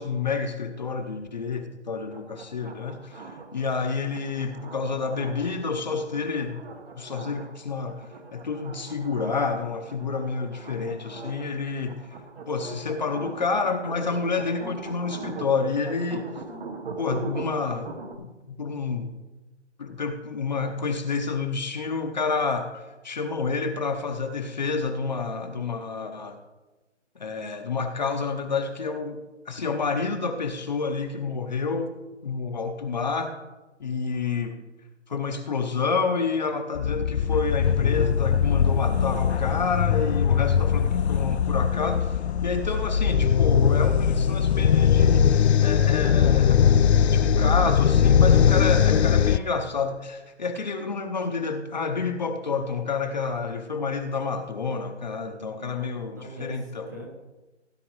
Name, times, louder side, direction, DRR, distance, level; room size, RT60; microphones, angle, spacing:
voice 1, 0.0-6.6 6.9-8.0 8.3-12.0 12.5-16.3 17.0-17.9 18.2-19.1 19.8-22.7 23.0-26.4 27.2-29.2 29.5-31.9 32.2-33.3 33.8-34.5 35.1-42.1 42.4-46.7 47.0-56.9, left 4 dB, 35° left, 5 dB, 0.8 m, -29 dB
sound 1, 2.1-18.1, right 3 dB, 50° right, 1.3 m, -41 dB
sound 2, 36.8-49.4, left 8 dB, 65° left, 0.5 m, -20 dB
voice 2, 55.2-57.1, equal, 15° right, -1 dB, 0.7 m, -42 dB
17.0 x 9.9 x 3.1 m, 1.1 s
hypercardioid pair, 170°, 36 cm